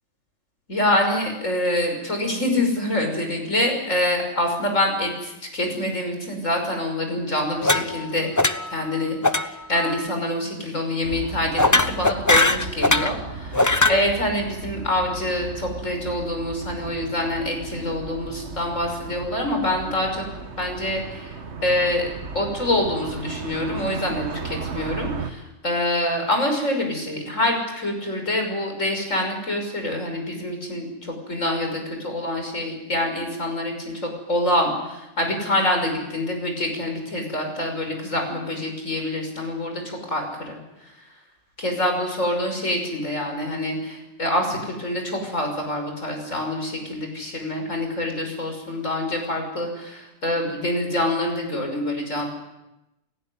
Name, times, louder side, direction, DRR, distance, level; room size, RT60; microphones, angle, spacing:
voice 1, 0.7-8.3 8.7-20.3 20.6-21.3 21.6-22.0 22.3-40.6 41.6-52.3, left 1 dB, 85° left, 3 dB, 6.2 m, -26 dB
sound 1, 7.6-8.1 8.4-8.8 9.2-9.5 9.7-10.0 11.6-13.2 13.5-14.0, left 2 dB, 15° left, 0.9 m, -20 dB
sound 2, 11.0-25.3, right 5 dB, 65° right, 1.6 m, -35 dB
29.5 x 16.0 x 9.6 m, 0.95 s
omnidirectional pair, 1.3 m